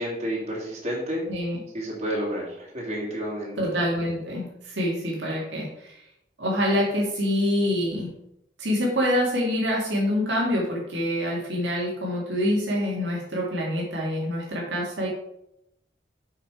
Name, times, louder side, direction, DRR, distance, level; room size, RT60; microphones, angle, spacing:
voice 1, 0.0-1.3 1.7-3.5, equal, 35° right, -5 dB, 2.3 m, -30 dB
voice 2, 1.3-1.6 3.6-6.0 6.4-8.1 8.6-15.1, equal, 90° right, -4 dB, 1.9 m, -26 dB
6.0 x 5.9 x 4.8 m, 0.79 s
head